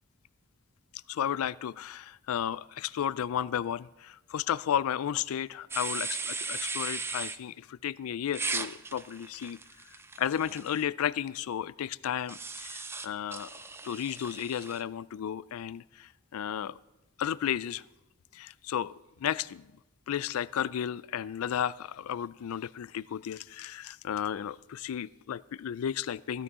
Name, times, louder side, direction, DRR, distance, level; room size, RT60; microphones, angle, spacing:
voice 1, 1.1-9.6 10.2-16.8 17.2-17.8 18.3-19.7 20.1-26.4, left 9 dB, 90° left, 18 dB, 0.4 m, -33 dB
sound 1, 5.7-7.4 8.3-10.8 12.3-14.8, right 4 dB, 10° right, 0.4 m, -37 dB
16.5 x 12.5 x 3.7 m, 0.96 s
head